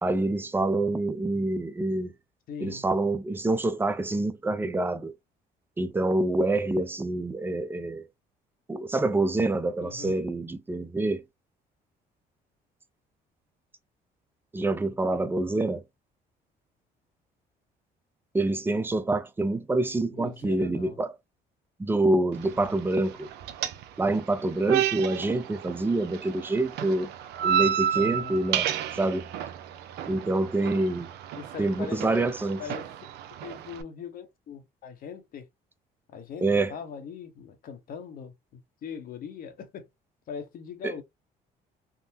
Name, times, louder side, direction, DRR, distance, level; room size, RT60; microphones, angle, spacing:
voice 1, 0.0-2.1 2.6-5.1 5.8-8.1 8.7-11.2 14.5-15.8 18.3-21.1 21.8-23.3 24.0-27.1 27.4-29.3 30.1-31.1 31.6-32.6 36.4-36.7 40.8-40.9, right 2 dB, 15° right, 0.5 m, -26 dB
voice 2, 2.5-2.8 9.8-10.2 20.1-21.0 27.9-28.4 31.3-32.3 32.6-33.1 33.4-35.5 36.1-39.9 40.3-41.0, left 6 dB, 60° left, 0.9 m, -41 dB
sound 1, 22.3-33.8, right 9 dB, 80° right, 0.5 m, -32 dB
3.6 x 2.0 x 2.7 m
cardioid pair, 110°, 17 cm